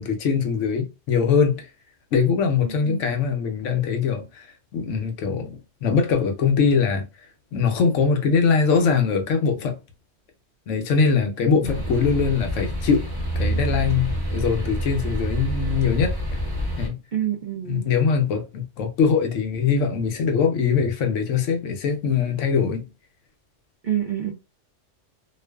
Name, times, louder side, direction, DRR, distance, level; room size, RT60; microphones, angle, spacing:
voice 1, 0.0-1.7 2.1-4.5 4.7-7.0 7.5-9.8 10.7-13.1 13.4-16.2 16.8-17.0 17.6-22.9, left 5 dB, 85° left, 1.0 m, -22 dB
voice 2, 2.6-3.0 11.6-11.7 17.1-17.9 23.8-24.3, right 10 dB, 60° right, 0.5 m, -27 dB
sound 1, 11.6-16.9, equal, 20° right, 0.8 m, -27 dB
2.5 x 2.3 x 2.2 m
omnidirectional pair, 1.2 m